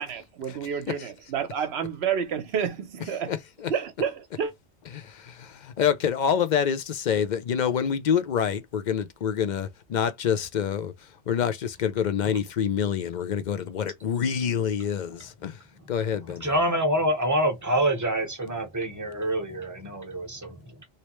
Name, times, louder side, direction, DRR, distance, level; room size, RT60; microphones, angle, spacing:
voice 1, 0.0-3.3 3.7-4.5, right 7 dB, 65° right, 1.0 m, -29 dB
voice 2, 3.3-3.7 4.9-16.6, left 8 dB, 55° left, 0.5 m, -27 dB
voice 3, 16.4-20.9, right 1 dB, 15° right, 0.9 m, -26 dB
3.2 x 2.8 x 3.0 m
omnidirectional pair, 1.2 m